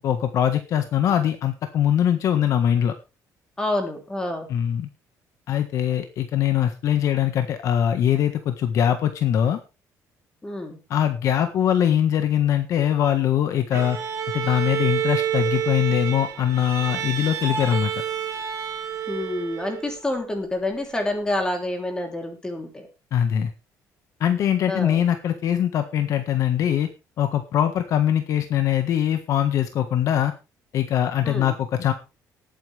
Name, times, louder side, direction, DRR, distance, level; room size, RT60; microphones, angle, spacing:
voice 1, 0.0-2.9 4.5-4.9 5.5-9.6 10.9-14.0 14.3-17.9 23.1-23.5 24.2-26.9 27.2-30.3 30.7-31.9, left 10 dB, 55° left, 8 dB, 1.5 m, -22 dB
voice 2, 3.6-4.5 10.4-10.8 19.1-22.9 24.7-25.0 31.2-31.5, left 1 dB, 10° left, 3 dB, 3.3 m, -28 dB
Bowed string instrument, 13.7-20.0, right 9 dB, 50° right, 2.6 m, -28 dB
19.0 x 9.0 x 3.4 m, 0.29 s
cardioid pair, 160°, 6 cm